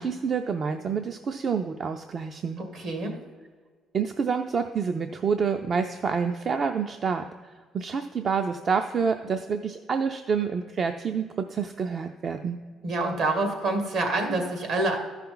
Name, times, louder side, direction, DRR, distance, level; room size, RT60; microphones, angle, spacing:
voice 1, 0.0-2.6 3.9-7.2 7.7-12.6, right 6 dB, 45° right, 6 dB, 0.4 m, -28 dB
voice 2, 2.7-3.1 12.8-15.0, right 2 dB, 70° right, 3 dB, 2.0 m, -26 dB
13.5 x 5.8 x 3.8 m, 1.5 s
cardioid pair, 95°, 0 cm